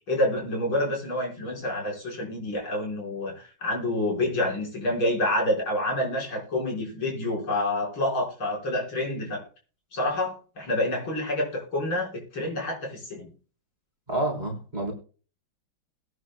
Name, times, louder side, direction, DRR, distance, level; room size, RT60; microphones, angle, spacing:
voice 1, 0.1-9.4 9.9-13.3, left 1 dB, 80° left, -1 dB, 5.7 m, -28 dB
voice 2, 14.1-14.9, right 1 dB, 20° right, -1 dB, 3.9 m, -28 dB
22.0 x 9.7 x 2.2 m, 0.38 s
omnidirectional pair, 2.2 m